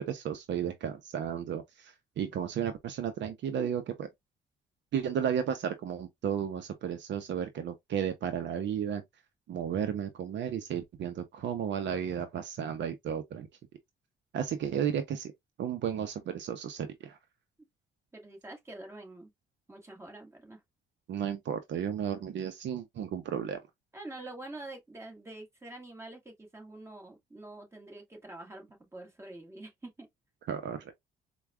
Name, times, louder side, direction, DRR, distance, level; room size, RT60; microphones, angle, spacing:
voice 1, 0.0-4.1 4.9-9.0 9.5-13.5 14.3-15.3 15.6-17.2 21.1-23.6 30.5-30.9, right 8 dB, 65° right, 0.6 m, -33 dB
voice 2, 18.1-19.3 19.7-20.6 23.9-30.1, right 2 dB, 15° right, 1.6 m, -46 dB
4.5 x 2.2 x 2.2 m
cardioid pair, 90°, 20 cm